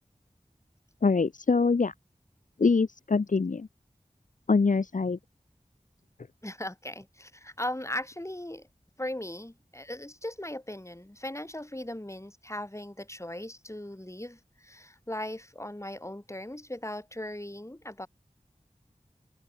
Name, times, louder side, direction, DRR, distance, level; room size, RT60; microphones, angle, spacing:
voice 1, 1.0-1.9 2.6-3.7 4.5-5.2, left 4 dB, 70° left, 0.9 m, -24 dB
voice 2, 6.4-8.7 9.0-18.1, left 1 dB, 20° left, 7.6 m, -38 dB
open air
wide cardioid pair, 45°, 14 cm